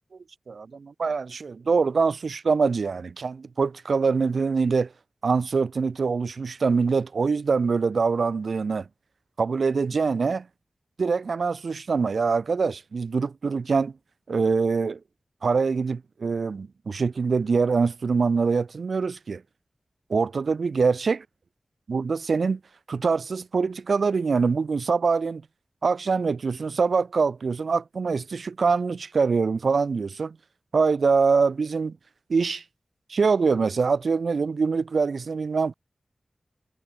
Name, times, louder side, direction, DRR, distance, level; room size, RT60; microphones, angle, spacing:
voice 1, 0.5-4.9 5.2-8.9 9.4-10.5 11.0-13.9 14.3-15.0 15.4-19.4 20.1-21.2 21.9-22.6 22.9-25.4 25.8-30.4 30.7-31.9 32.3-32.6 33.1-35.7, right 4 dB, 80° right, 0.5 m, -24 dB
wide cardioid pair, 75°, 0 cm